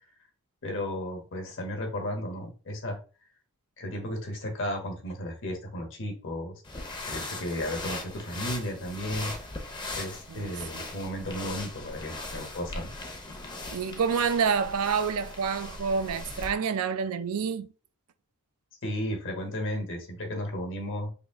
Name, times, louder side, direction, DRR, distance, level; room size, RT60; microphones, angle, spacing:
voice 1, 0.6-3.0 3.8-6.5 7.1-9.3 10.0-12.9 18.8-21.1, left 1 dB, 60° left, 1.1 m, -34 dB
sound 1, 6.6-16.6, left 2 dB, 20° left, 0.7 m, -39 dB
voice 2, 10.3-10.9 13.7-17.7, right 6 dB, 75° right, 0.4 m, -28 dB
3.5 x 2.5 x 3.5 m
head